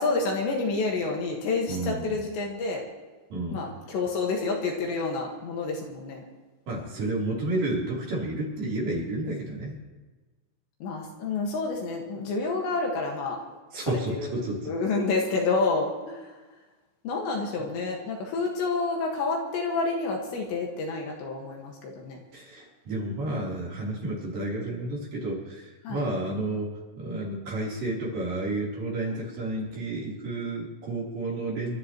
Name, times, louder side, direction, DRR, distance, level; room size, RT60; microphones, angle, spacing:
voice 1, 0.0-2.8 3.5-6.2 10.8-13.4 13.8-14.4 14.6-16.4 17.0-22.2 25.8-26.0 29.1-29.5 29.8-29.9, left 3 dB, 65° left, 0 dB, 3.7 m, -29 dB
voice 2, 1.7-2.2 3.3-3.7 6.7-9.7 13.7-14.7 22.3-26.7 27.0-31.8, right 2 dB, 45° right, -5 dB, 5.0 m, -31 dB
28.5 x 13.0 x 3.1 m, 1.2 s
omnidirectional pair, 5.8 m